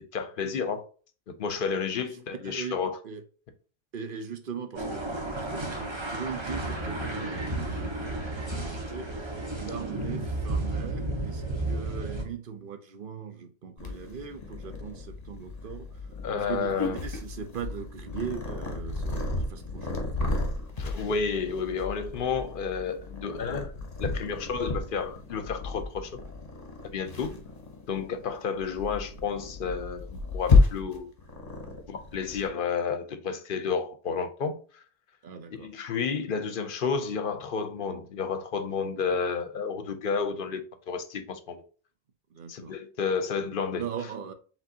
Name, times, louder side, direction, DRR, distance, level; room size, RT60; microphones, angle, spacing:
voice 1, 0.1-0.8 1.3-3.0 10.0-10.3 16.2-17.0 20.8-26.2 26.9-27.3 27.9-30.1 30.3-31.1 31.9-34.8 35.6-41.6 42.5-43.9, left 5 dB, 60° left, 0.8 m, -31 dB
voice 2, 2.4-2.8 3.0-3.2 3.9-9.3 9.6-15.9 16.3-20.2 35.2-35.7 42.3-42.8 43.8-44.3, right 6 dB, 60° right, 0.9 m, -39 dB
sound 1, 4.7-12.2, right 2 dB, 30° right, 1.0 m, -32 dB
Purr, 13.8-32.5, left 3 dB, 40° left, 1.0 m, -31 dB
5.0 x 3.6 x 2.7 m
omnidirectional pair, 1.0 m